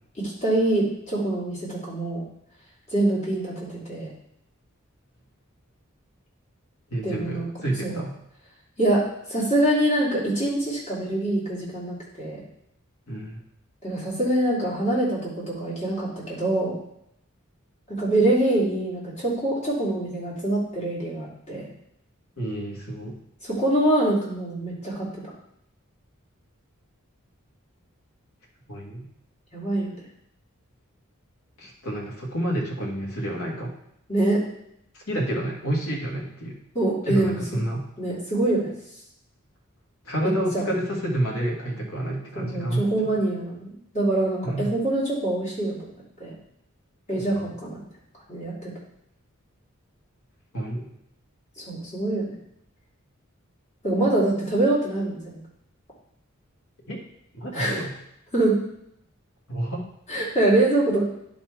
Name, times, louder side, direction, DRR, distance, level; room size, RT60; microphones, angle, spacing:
voice 1, 0.2-2.2 2.9-4.1 7.0-7.5 7.8-8.0 8.8-9.0 9.3-12.4 13.8-16.7 17.9-21.6 23.4-25.1 29.5-29.9 34.1-34.4 36.7-37.4 38.0-38.7 40.2-40.6 42.3-45.8 46.2-46.3 47.1-47.8 48.3-48.7 51.6-52.2 53.8-55.4 57.5-57.8 58.3-58.6 60.1-61.0, right 1 dB, 30° left, -6 dB, 2.9 m, -24 dB
voice 2, 6.9-8.1 13.1-13.4 22.4-23.2 28.7-29.0 31.6-33.7 34.9-36.6 37.1-37.8 40.0-42.9 44.4-44.8 47.1-47.4 50.5-50.9 56.9-57.0 57.3-57.9 59.5-59.9, right 1 dB, 85° left, -2 dB, 1.6 m, -29 dB
10.5 x 4.2 x 4.6 m, 0.77 s
head